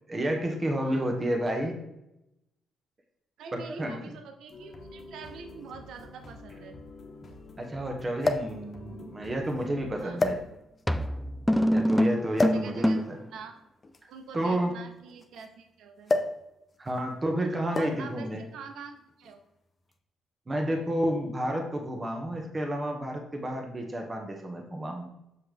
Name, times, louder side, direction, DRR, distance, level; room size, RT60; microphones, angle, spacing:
voice 1, 0.1-1.8 3.5-4.0 7.6-10.4 11.7-13.2 14.3-14.7 16.8-18.4 20.5-25.1, right 1 dB, 25° right, 2 dB, 1.2 m, -30 dB
voice 2, 0.8-1.1 3.4-6.8 10.0-10.2 11.7-12.1 12.5-13.6 14.1-16.1 17.8-18.3 18.5-19.4, right 5 dB, 75° right, 6 dB, 0.7 m, -45 dB
sound 1, 4.5-10.5, left 2 dB, 50° left, 1.2 m, -48 dB
sound 2, 4.5-4.6 5.7-5.8 6.0-6.1 8.2-8.6 9.4-9.6 10.2-10.9 12.4-12.7 13.8-15.5 16.1-16.4 16.7-17.0 17.7-18.1 19.1-19.3, left 2 dB, 30° left, 0.7 m, -29 dB
sound 3, 10.0-10.2 10.9-13.3, equal, ahead, 0.3 m, -25 dB
6.6 x 5.6 x 3.4 m, 0.87 s
cardioid pair, 90°, 0 cm